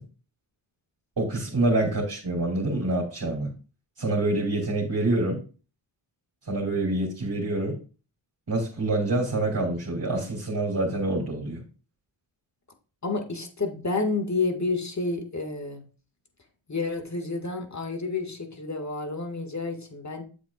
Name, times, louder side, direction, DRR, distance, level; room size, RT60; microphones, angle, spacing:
voice 1, 1.2-3.5 4.0-5.4 6.5-7.8 8.5-11.6, right 2 dB, 45° right, -4 dB, 3.2 m, -26 dB
voice 2, 13.0-15.8 16.7-20.2, left 3 dB, 35° left, 5 dB, 2.0 m, -30 dB
8.3 x 7.5 x 2.5 m, 0.36 s
cardioid pair, 50°, 49 cm